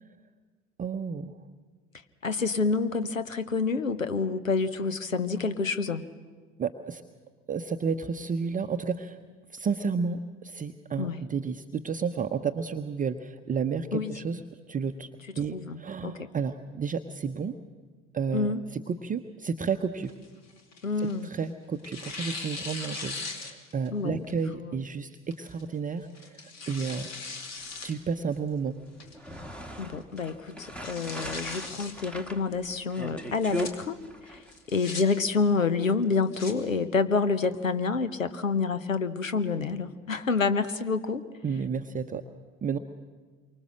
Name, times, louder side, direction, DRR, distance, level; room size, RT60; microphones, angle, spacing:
voice 1, 0.8-1.4 6.6-7.0 7.5-9.2 9.5-14.4 14.7-15.1 15.4-17.6 18.1-20.1 21.2-27.1 27.8-28.7 41.4-42.2 42.6-42.8, right 5 dB, 20° right, 7 dB, 0.8 m, -31 dB
voice 2, 2.2-6.0 11.0-11.2 13.9-14.1 15.5-16.3 18.3-18.6 20.8-21.3 23.9-24.2 24.6-24.7 29.8-34.0 34.3-34.4 34.7-41.2, left 4 dB, 85° left, 12 dB, 1.0 m, -28 dB
Tearing, 20.0-21.4 21.8-23.9 24.3-24.4 25.3-25.6 26.1-27.9 28.3-28.4 29.0-29.4 29.8-29.9 30.2-30.3 30.6-31.9 33.2-33.7 34.5-35.0 36.0-36.5, left 3 dB, 40° left, 2.8 m, -39 dB
sound 1, 29.0-34.5, right 2 dB, 5° left, 1.6 m, -39 dB
27.5 x 24.5 x 6.4 m, 1.5 s
figure-of-eight pair, 70°, 38 cm